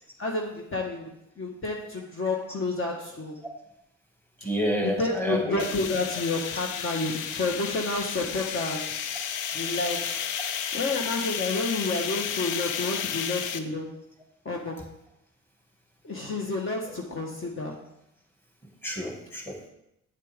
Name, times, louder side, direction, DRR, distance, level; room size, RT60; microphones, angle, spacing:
voice 1, 0.2-3.4 4.4-4.5 4.8-9.0 9.5-10.1 10.7-14.0 14.4-14.9 16.0-17.8, left 3 dB, 45° left, 0 dB, 1.5 m, -30 dB
voice 2, 4.4-5.6 18.8-19.7, equal, 5° left, 0 dB, 2.2 m, -29 dB
sound 1, 5.6-13.6, left 8 dB, 90° left, 0.7 m, -32 dB
8.5 x 8.4 x 3.7 m, 0.82 s
cardioid pair, 90°, 30 cm